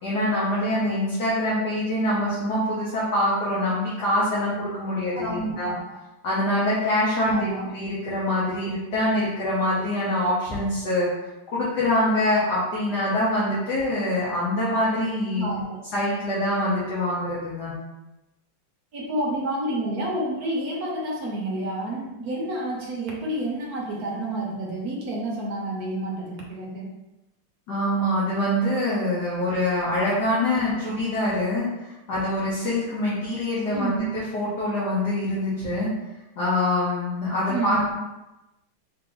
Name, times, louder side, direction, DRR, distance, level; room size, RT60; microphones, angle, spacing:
voice 1, 0.0-5.7 6.2-7.5 7.7-11.1 11.5-15.4 15.9-17.7 27.7-33.9 34.1-35.9 36.4-37.8, left 1 dB, 55° left, -8 dB, 1.4 m, -24 dB
voice 2, 5.2-5.8 7.2-7.7 15.3-15.8 18.9-26.9 30.8-30.9 33.7-34.1 37.5-37.9, right 1 dB, 55° right, -3 dB, 1.1 m, -29 dB
3.7 x 3.2 x 3.8 m, 1.0 s
omnidirectional pair, 2.3 m